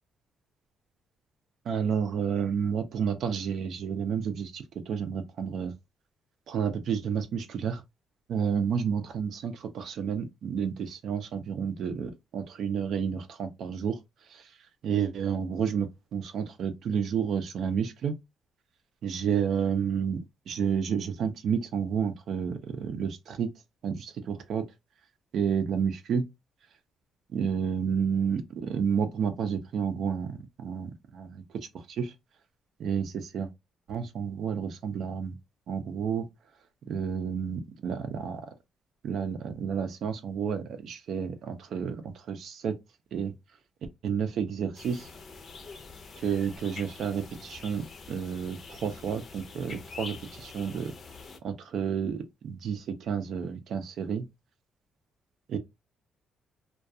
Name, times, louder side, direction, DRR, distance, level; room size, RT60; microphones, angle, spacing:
voice 1, 1.7-5.7 6.5-7.8 8.3-14.0 14.3-14.5 14.8-18.1 19.0-23.5 23.8-24.6 25.3-26.3 27.3-32.1 32.8-33.5 33.9-35.3 35.7-36.3 36.9-38.4 39.0-42.8 43.1-43.3 44.0-45.1 46.2-50.9 51.4-54.2 55.5-55.6, right 7 dB, 70° right, 0.4 m, -30 dB
sound 1, 44.8-51.4, left 4 dB, 50° left, 0.5 m, -45 dB
2.3 x 2.3 x 2.6 m
cardioid pair, 90°, 0 cm